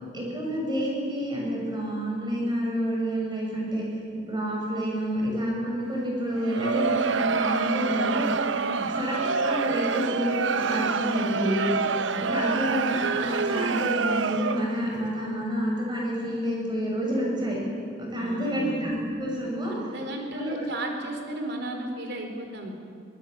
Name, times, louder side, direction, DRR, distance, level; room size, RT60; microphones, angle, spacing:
voice 1, 0.1-3.8 4.2-8.3 9.0-11.7 12.2-17.6 18.0-19.8 20.4-20.6, equal, 25° right, -2 dB, 7.2 m, -28 dB
Crowd, 6.4-14.9, right 5 dB, 80° right, 0.9 m, -27 dB
voice 2, 18.2-18.8 19.7-22.7, right 1 dB, 65° right, 3 dB, 4.4 m, -34 dB
24.5 x 20.0 x 9.0 m, 2.3 s
head